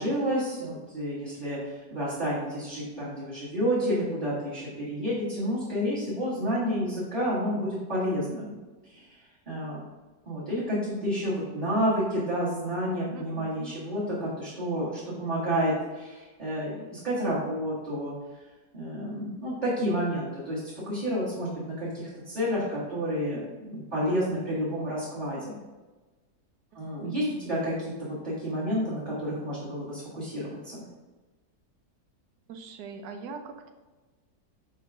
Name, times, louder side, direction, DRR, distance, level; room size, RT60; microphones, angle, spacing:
voice 1, 0.0-8.6 8.8-9.2 9.5-9.8 10.3-18.1 18.7-25.6 26.7-30.8, equal, 30° right, -10 dB, 1.9 m, -30 dB
voice 2, 12.9-13.8 26.7-27.3 32.5-33.7, right 4 dB, 80° right, 6 dB, 1.3 m, -43 dB
5.6 x 4.2 x 5.9 m, 1.2 s
omnidirectional pair, 1.7 m